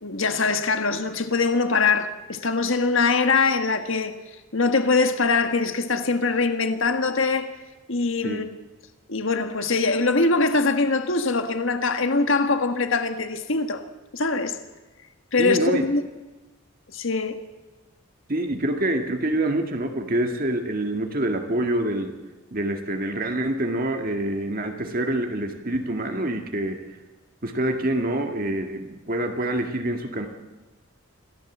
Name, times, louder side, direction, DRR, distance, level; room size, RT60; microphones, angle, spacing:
voice 1, 0.0-4.1 4.5-7.5 7.9-8.5 9.1-13.8 14.1-14.6 15.3-16.0 16.9-17.4, left 3 dB, 60° left, 1.7 m, -22 dB
voice 2, 15.4-15.9 18.3-22.1 22.5-26.8 27.4-30.3, right 1 dB, 40° right, 2.0 m, -26 dB
26.5 x 16.5 x 7.4 m
head